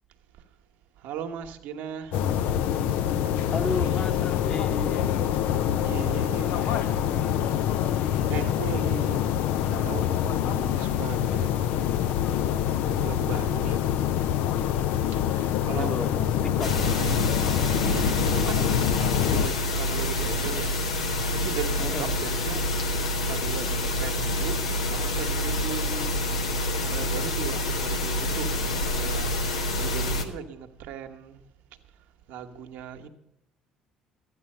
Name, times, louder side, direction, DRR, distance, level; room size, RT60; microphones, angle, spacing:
voice 1, 1.0-2.3 3.2-4.3 5.8-6.9 8.3-9.3 9.6-11.9 12.8-13.8 15.1-16.1 17.8-18.8 19.2-20.8 21.2-22.6 23.3-26.1 26.9-28.5 29.0-31.4 32.3-33.1, right 7 dB, 65° right, 6 dB, 1.2 m, -38 dB
sound 1, 2.1-19.5, left 10 dB, 65° left, 0.5 m, -25 dB
voice 2, 3.5-5.1 6.6-7.5 15.7-16.7 21.8-22.1, left 3 dB, 35° left, 4 dB, 1.3 m, -33 dB
sound 2, 16.6-30.2, left 1 dB, 90° left, 1.1 m, -27 dB
12.5 x 9.5 x 5.4 m, 0.86 s
hypercardioid pair, 55°, 3 cm